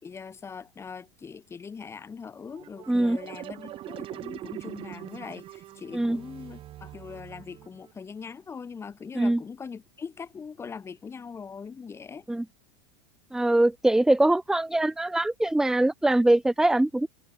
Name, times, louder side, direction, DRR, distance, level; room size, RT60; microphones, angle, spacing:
voice 1, 0.0-12.3, left 5 dB, 20° left, 6.4 m, -41 dB
sound 1, 2.5-7.9, right 14 dB, 35° right, 7.0 m, -42 dB
voice 2, 13.3-17.1, right 1 dB, 5° right, 1.2 m, -22 dB
supercardioid pair, 135°, 15 cm